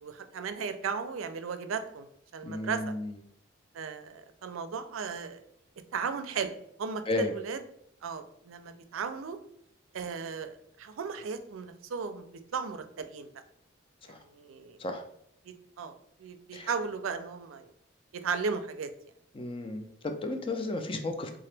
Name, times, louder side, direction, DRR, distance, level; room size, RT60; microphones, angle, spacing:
voice 1, 0.0-2.1 2.3-2.9 3.7-5.4 5.9-6.5 6.8-7.6 8.0-9.4 9.9-12.2 12.5-13.3 14.1-14.8 15.5-17.7 18.1-18.9, right 5 dB, 90° right, 9 dB, 0.4 m, -36 dB
voice 2, 2.4-3.1 7.1-7.3 14.1-14.2 14.8-15.0 16.5-16.7 19.3-21.4, left 2 dB, 25° left, 6 dB, 0.4 m, -33 dB
3.7 x 2.9 x 3.3 m, 0.72 s
head